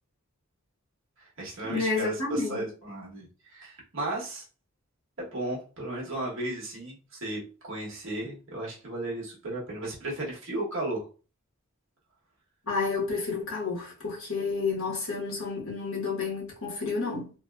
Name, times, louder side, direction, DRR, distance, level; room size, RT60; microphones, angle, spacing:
voice 1, 1.2-4.4 5.2-11.0, right 1 dB, 60° right, 1.1 m, -35 dB
voice 2, 1.7-2.6 12.7-17.3, left 4 dB, 65° left, 1.3 m, -30 dB
3.0 x 2.7 x 2.3 m
head